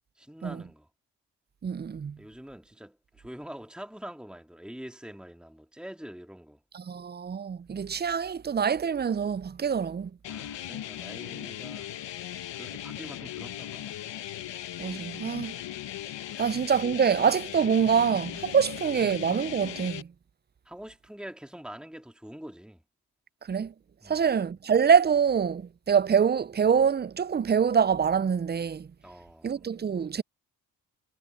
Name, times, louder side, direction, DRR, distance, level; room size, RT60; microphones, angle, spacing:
voice 1, 0.1-0.9 2.2-6.6 10.3-11.9 12.5-14.0 16.3-16.4 20.6-22.8 24.0-24.3 29.0-29.6, equal, ahead, 2.9 m, -45 dB
voice 2, 1.6-2.2 6.7-10.1 14.8-15.5 16.4-20.1 23.5-23.7 24.1-28.9 29.4-30.2, right 7 dB, 25° right, 0.5 m, -25 dB
sound 1, 10.2-20.0, left 12 dB, 75° left, 1.4 m, -38 dB
supercardioid pair, 45°, 43 cm